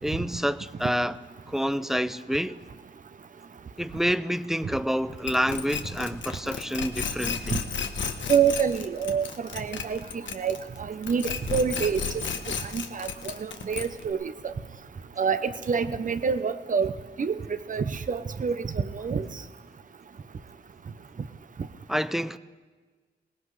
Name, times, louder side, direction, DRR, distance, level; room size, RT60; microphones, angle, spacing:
voice 1, 0.0-1.2 1.5-2.6 3.8-7.6 21.9-22.4, equal, ahead, 0.4 m, -28 dB
sound 1, 5.3-10.8 11.0-14.1, left 6 dB, 80° left, 1.1 m, -32 dB
voice 2, 8.3-10.0 10.3-12.0 12.6-14.5 15.2-16.9 17.2-19.3, right 6 dB, 45° right, 0.7 m, -27 dB
22.5 x 19.0 x 3.3 m
wide cardioid pair, 105°, 19 cm